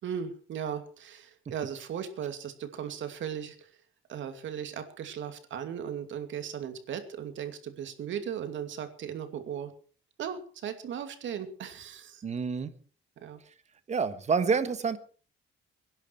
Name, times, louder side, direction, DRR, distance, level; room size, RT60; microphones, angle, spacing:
voice 1, 0.0-3.7 4.1-9.7 10.2-12.2 13.2-13.4, right 8 dB, 65° right, 8 dB, 2.6 m, -37 dB
voice 2, 12.2-12.7 13.9-15.0, right 5 dB, 35° right, 12 dB, 1.3 m, -28 dB
25.5 x 11.0 x 4.6 m, 0.41 s
cardioid pair, 165°, 21 cm